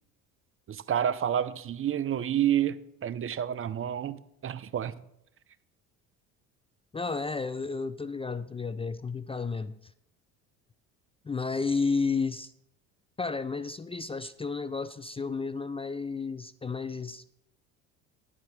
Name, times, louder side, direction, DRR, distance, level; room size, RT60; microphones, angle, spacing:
voice 1, 0.7-4.2 4.4-4.9, right 10 dB, 35° right, 0.6 m, -29 dB
voice 2, 6.9-9.8 11.2-12.5 13.2-17.3, left 4 dB, 15° left, 0.4 m, -32 dB
10.5 x 4.9 x 7.2 m
hypercardioid pair, 70°, 38 cm